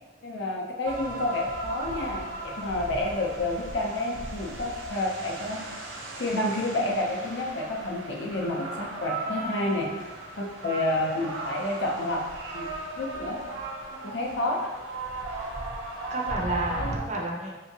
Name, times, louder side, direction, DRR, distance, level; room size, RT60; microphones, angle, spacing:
voice 1, 0.2-2.3 2.6-5.6 6.2-9.9 10.4-12.2 12.5-12.7 13.0-13.4 14.0-14.7 16.8-16.9, left 2 dB, 70° left, 0 dB, 0.6 m, -29 dB
sound 1, 0.9-17.0, right 2 dB, 85° right, 0.6 m, -37 dB
voice 2, 13.9-14.3 15.3-15.5 16.1-17.6, right 2 dB, 35° right, -1 dB, 0.5 m, -32 dB
3.4 x 2.8 x 2.7 m, 1.2 s
head